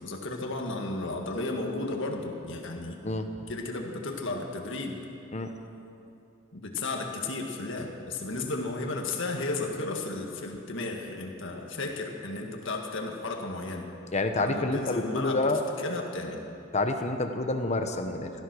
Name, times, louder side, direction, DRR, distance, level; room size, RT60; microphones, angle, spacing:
voice 1, 0.0-3.0 3.5-5.0 6.5-13.9 14.4-15.5 15.8-16.4, left 2 dB, 60° left, 2 dB, 1.9 m, -34 dB
voice 2, 14.1-15.6 16.7-18.3, left 2 dB, 35° left, 6 dB, 1.0 m, -28 dB
16.5 x 13.5 x 6.3 m, 2.7 s
head